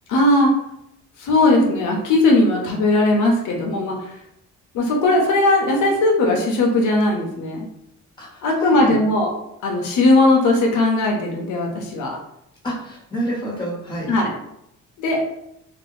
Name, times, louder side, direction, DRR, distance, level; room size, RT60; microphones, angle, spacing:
voice 1, 0.1-0.5 1.2-3.9 4.7-7.7 8.4-9.3 9.6-12.2 14.1-14.3 15.0-15.2, left 2 dB, 85° left, 0 dB, 0.8 m, -18 dB
voice 2, 8.2-9.0 12.6-14.1, right 1 dB, 15° left, -4 dB, 1.2 m, -28 dB
2.9 x 2.4 x 3.1 m, 0.79 s
cardioid pair, 90°, 30 cm